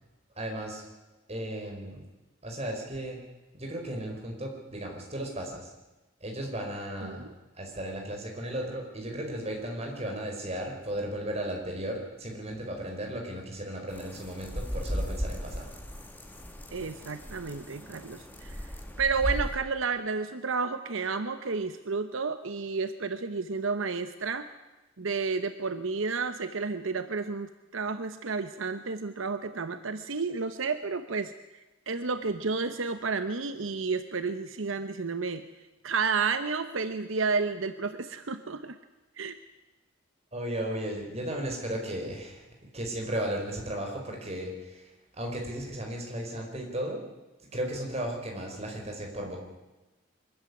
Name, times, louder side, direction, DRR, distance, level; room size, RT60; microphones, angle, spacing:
voice 1, 0.3-0.8 1.3-2.0 2.4-3.2 3.5-5.7 6.2-15.7 40.3-42.4 42.7-47.0 47.5-49.4, right 1 dB, 30° right, 1 dB, 4.8 m, -35 dB
sound 1, 13.9-19.5, equal, 10° left, 2.0 m, -36 dB
voice 2, 16.7-18.6 19.0-24.5 25.0-31.3 31.9-35.5 35.8-38.8 39.2-39.4, right 4 dB, 80° right, 10 dB, 0.9 m, -31 dB
23.5 x 14.0 x 9.7 m, 1.1 s
head